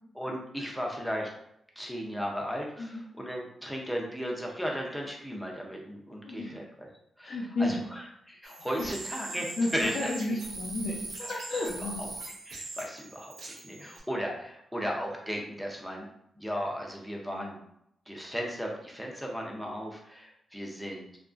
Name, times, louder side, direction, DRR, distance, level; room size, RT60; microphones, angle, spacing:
voice 1, 0.2-1.3 1.8-6.9 7.2-7.3 7.6-7.8 8.3-10.1 12.0-12.1 12.4-16.0 16.4-17.6 18.1-21.0, equal, ahead, -1 dB, 0.5 m, -35 dB
voice 2, 6.2-6.6 7.2-7.8 8.8-8.9 9.3-12.0 13.7-13.9 17.3-17.5, left 2 dB, 60° left, -5 dB, 0.5 m, -33 dB
sound 1, 8.4-14.0, right 3 dB, 65° right, 0.6 m, -41 dB
2.8 x 2.5 x 2.4 m, 0.76 s
wide cardioid pair, 125°, 0 cm